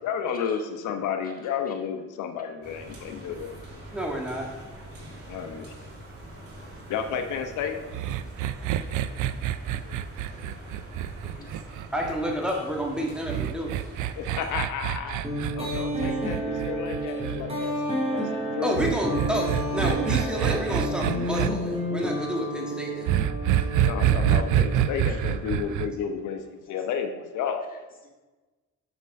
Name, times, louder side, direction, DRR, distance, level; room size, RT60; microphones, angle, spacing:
voice 1, 0.0-3.5 5.3-5.7 6.9-7.8 14.2-15.2 15.5-17.8 18.1-18.8 23.8-27.6, left 7 dB, 85° left, 6 dB, 0.8 m, -31 dB
sound 1, 2.6-14.5, right 1 dB, 50° right, 2.5 m, -44 dB
voice 2, 3.9-4.5 4.8-4.9 8.2-9.1 10.4-10.5 11.9-13.7 18.6-23.1, equal, 5° right, 0 dB, 1.7 m, -30 dB
sound 2, 7.9-12.3 13.3-17.4 18.7-21.5 23.1-25.9, right 11 dB, 80° right, 0.5 m, -26 dB
voice 3, 8.4-9.3 9.7-9.9 10.5-10.6 11.2-11.5 15.5-15.6 17.3-18.2 23.5-23.7 25.1-25.2, left 2 dB, 30° left, -1 dB, 2.3 m, -54 dB
sound 3, 15.2-25.8, right 1 dB, 20° right, 2.7 m, -31 dB
6.8 x 6.0 x 5.3 m, 1.2 s
cardioid pair, 90°, 30 cm